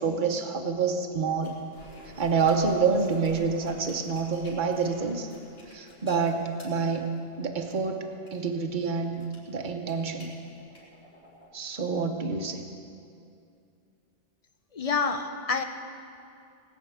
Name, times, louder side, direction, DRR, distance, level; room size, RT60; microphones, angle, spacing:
voice 1, 0.0-1.6 2.2-5.3 5.7-7.1 7.4-8.1 8.3-10.3 11.5-12.6, right 5 dB, 50° right, 4 dB, 1.2 m, -27 dB
sound 1, 1.4-11.5, equal, 75° left, 3.8 m, -51 dB
voice 2, 14.7-15.6, left 5 dB, 40° left, 7 dB, 0.9 m, -27 dB
19.0 x 6.4 x 8.4 m, 2.5 s
omnidirectional pair, 1.0 m